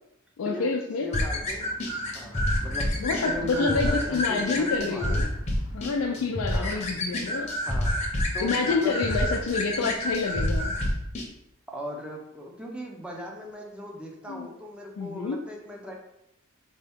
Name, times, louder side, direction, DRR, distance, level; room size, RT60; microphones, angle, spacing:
voice 1, 0.4-1.2 3.0-5.3 5.7-7.6 8.4-10.8 14.3-14.5 15.0-15.4, left 4 dB, 80° left, 2 dB, 0.4 m, -28 dB
voice 2, 1.0-1.7 2.1-5.2 6.5-6.9 7.7-7.9 8.3-8.9 11.7-15.9, equal, 5° right, -1 dB, 0.6 m, -38 dB
sound 1, 1.1-11.3, left 1 dB, 30° left, 0.7 m, -28 dB
4.4 x 2.8 x 3.5 m, 0.82 s
head